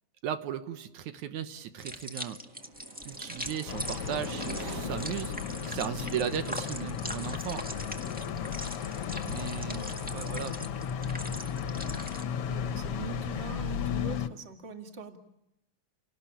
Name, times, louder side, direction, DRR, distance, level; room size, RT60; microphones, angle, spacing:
voice 1, 0.2-2.4 3.1-5.3 5.7-7.7 9.2-9.8 10.1-10.7, right 9 dB, 80° right, 9 dB, 2.5 m, -36 dB
sound 1, 1.8-12.2, equal, 5° right, 0.9 m, -41 dB
Projectile fly, 2.1-8.9, right 3 dB, 45° right, 1.1 m, -46 dB
sound 2, 3.7-14.3, left 8 dB, 60° left, 1.8 m, -35 dB
voice 2, 9.7-10.2 12.5-15.2, right 4 dB, 25° right, 4 dB, 2.0 m, -43 dB
30.0 x 18.5 x 8.8 m, 0.89 s
omnidirectional pair, 3.3 m